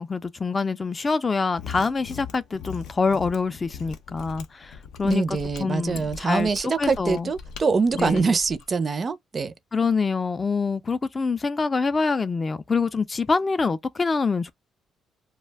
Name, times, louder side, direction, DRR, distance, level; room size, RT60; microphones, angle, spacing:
voice 1, 0.0-7.3 8.0-8.4 9.7-14.5, left 4 dB, 30° left, 0.3 m, -25 dB
Mechanisms, 1.5-8.6, left 7 dB, 85° left, 0.5 m, -40 dB
voice 2, 5.0-9.5, right 4 dB, 40° right, 0.4 m, -24 dB
2.4 x 2.1 x 3.3 m
cardioid pair, 90°, 0 cm